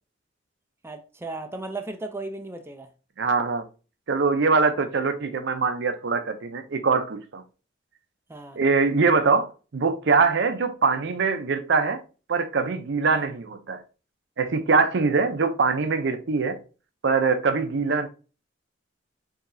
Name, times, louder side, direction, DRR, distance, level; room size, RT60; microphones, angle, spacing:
voice 1, 0.8-2.9 8.3-8.6 13.1-13.3, right 2 dB, 15° right, 0.4 m, -36 dB
voice 2, 3.2-3.7 4.1-7.4 8.6-12.0 12.3-13.8 14.4-16.6 17.0-18.1, right 4 dB, 65° right, 0.6 m, -23 dB
4.7 x 2.8 x 2.6 m
head